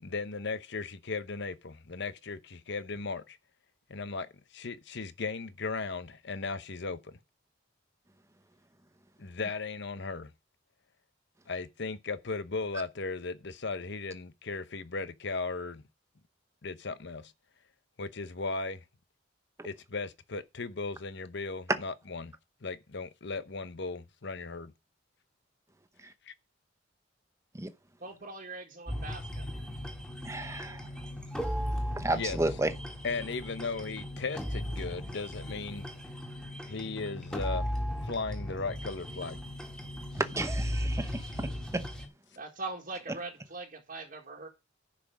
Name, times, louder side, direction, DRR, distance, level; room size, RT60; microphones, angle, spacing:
voice 1, 0.0-3.4 3.9-4.3 4.5-7.1 9.2-10.3 11.5-15.8 16.6-17.3 18.0-18.8 19.6-22.3 22.6-24.7 26.3-26.4 32.1-32.4 33.0-35.9 36.7-37.8 38.0-39.4, left 4 dB, 60° left, 0.9 m, -36 dB
voice 2, 28.0-29.5 42.4-44.5, right 3 dB, 45° right, 1.9 m, -41 dB
sound 1, 28.9-42.1, equal, 5° left, 2.2 m, -37 dB
voice 3, 30.2-30.9 32.0-32.7 40.1-41.8, right 2 dB, 15° right, 0.9 m, -32 dB
10.5 x 5.9 x 6.2 m
head